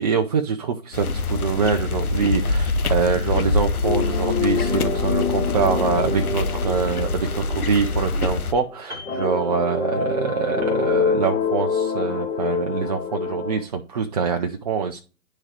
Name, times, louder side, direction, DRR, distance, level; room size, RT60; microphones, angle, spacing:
voice 1, 0.0-15.0, right 5 dB, 30° right, 3 dB, 0.4 m, -24 dB
sound 1, 0.9-8.5, left 2 dB, 75° left, 0.9 m, -25 dB
sound 2, 3.8-8.7 9.0-13.6, left 6 dB, 55° left, 1.7 m, -26 dB
Piano, 8.9-10.3 10.6-10.9, left 2 dB, 5° right, 1.4 m, -42 dB
10.5 x 3.7 x 3.2 m, 0.34 s
figure-of-eight pair, 125°, 44 cm